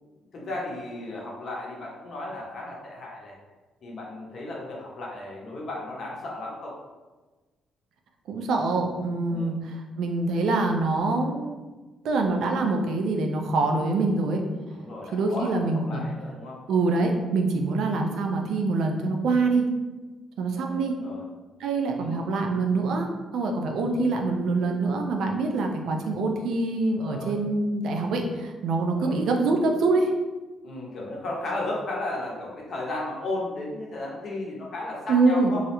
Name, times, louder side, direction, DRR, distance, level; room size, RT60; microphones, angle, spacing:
voice 1, 0.3-3.3 3.8-6.8 9.3-9.5 14.7-16.6 20.5-21.2 22.0-22.2 26.9-27.4 28.9-29.2 30.6-35.6, left 2 dB, 55° left, -2 dB, 0.6 m, -35 dB
voice 2, 8.3-11.6 12.0-14.4 15.1-16.0 16.7-19.7 20.4-21.0 21.6-30.1 35.1-35.5, right 3 dB, 75° right, 3 dB, 0.3 m, -25 dB
2.3 x 2.0 x 2.9 m, 1.2 s
cardioid pair, 90°, 0 cm